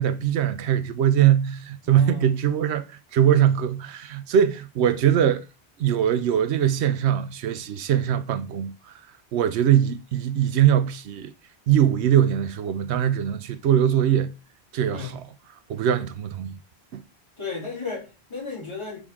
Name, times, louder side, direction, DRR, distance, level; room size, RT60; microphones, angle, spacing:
voice 1, 0.0-5.5 5.8-9.0 9.3-11.3 11.7-14.3 14.7-15.2 15.7-16.5 16.9-17.0, right 10 dB, 90° right, 0.9 m, -22 dB
voice 2, 1.8-2.4 13.8-14.0 14.9-15.2 17.4-19.0, left 5 dB, 25° left, 3.1 m, -34 dB
6.5 x 6.1 x 3.7 m
omnidirectional pair, 1.1 m